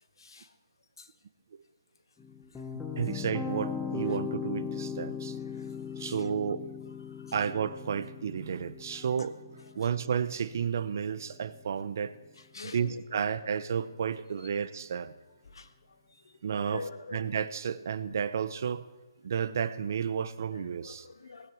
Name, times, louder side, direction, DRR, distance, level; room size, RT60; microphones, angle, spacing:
voice 1, 0.2-0.5 1.0-1.1 2.6-2.7 5.5-6.3 7.1-7.3 9.2-9.3 9.7-9.9 12.4-13.4 15.5-17.3 20.5-21.5, left 4 dB, 75° left, 9 dB, 1.7 m, -46 dB
sound 1, 2.2-11.3, left 6 dB, 5° left, 0.9 m, -39 dB
voice 2, 3.0-5.4 6.0-6.7 7.3-9.3 9.8-12.2 12.6-15.1 16.4-16.9 17.1-18.8 19.2-21.1, right 7 dB, 45° right, 15 dB, 0.8 m, -32 dB
19.5 x 9.3 x 7.8 m, 1.2 s
hypercardioid pair, 170°, 2 cm